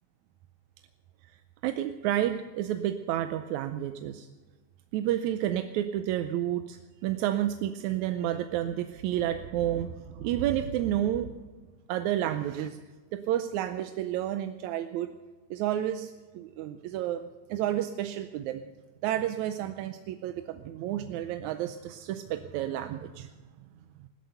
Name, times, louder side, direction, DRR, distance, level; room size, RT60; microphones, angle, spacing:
voice 1, 1.6-4.3 4.9-11.3 11.9-12.8 13.1-15.1 15.5-18.6 19.0-23.3 24.0-24.1, right 12 dB, 75° right, 8 dB, 1.9 m, -30 dB
16.0 x 13.0 x 6.8 m, 1.4 s
omnidirectional pair, 3.6 m